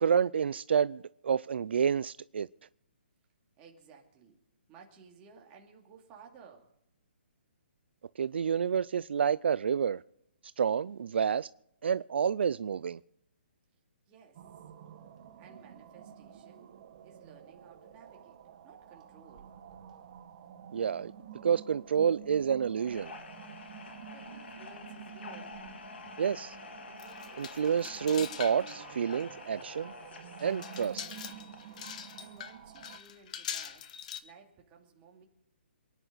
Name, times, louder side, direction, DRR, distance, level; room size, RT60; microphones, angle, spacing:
voice 1, 0.0-2.5 8.2-10.0 10.6-11.5 11.8-13.0 20.7-21.1 21.4-23.1 26.2-26.6 27.4-29.9 30.4-31.0, right 7 dB, 65° right, 0.4 m, -29 dB
voice 2, 3.6-4.4 4.7-6.7 14.1-14.4 15.4-16.7 17.0-18.4 18.6-19.5 24.1-25.6 32.2-33.9 34.2-35.3, right 5 dB, 20° right, 2.6 m, -56 dB
sound 1, 14.3-33.0, right 8 dB, 35° right, 1.5 m, -50 dB
sound 2, 22.8-31.7, left 3 dB, 70° left, 3.0 m, -48 dB
sound 3, 27.0-28.8 29.1-29.2 29.8-29.9 30.4-34.2, left 9 dB, 40° left, 1.1 m, -43 dB
28.0 x 10.0 x 4.0 m
hypercardioid pair, 160°, 6 cm